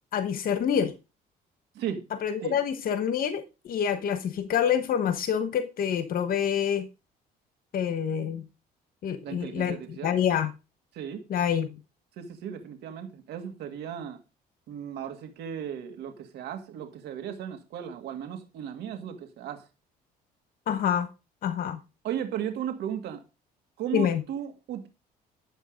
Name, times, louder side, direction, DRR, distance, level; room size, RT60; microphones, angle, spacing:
voice 1, 0.1-0.9 2.2-6.9 7.7-8.4 9.0-10.5 11.3-11.8 20.7-21.1 21.4-21.8 23.9-24.2, left 8 dB, 60° left, 1.2 m, -27 dB
voice 2, 9.2-10.2 10.9-11.2 12.2-14.2 14.7-19.7 22.0-23.2 23.8-24.9, right 9 dB, 75° right, 1.9 m, -36 dB
12.0 x 8.0 x 5.1 m
cardioid pair, 110°, 17 cm